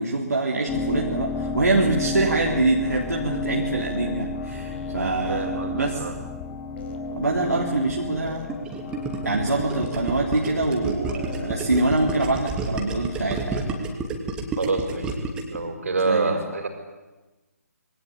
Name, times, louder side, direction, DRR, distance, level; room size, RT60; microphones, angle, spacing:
voice 1, 0.0-6.1 7.1-8.5 9.2-13.6 16.0-16.3, right 2 dB, 75° right, -1 dB, 3.7 m, -24 dB
sound 1, 0.7-13.9, left 3 dB, 10° left, 1.0 m, -34 dB
sound 2, 0.8-13.0, left 3 dB, 40° left, 4.6 m, -42 dB
voice 2, 5.3-6.1 14.6-15.1 15.5-16.7, right 3 dB, 55° right, 6 dB, 5.6 m, -26 dB
Gurgling, 8.5-15.6, right 4 dB, 10° right, 2.9 m, -30 dB
26.5 x 23.0 x 8.7 m, 1.1 s
figure-of-eight pair, 140°, 9 cm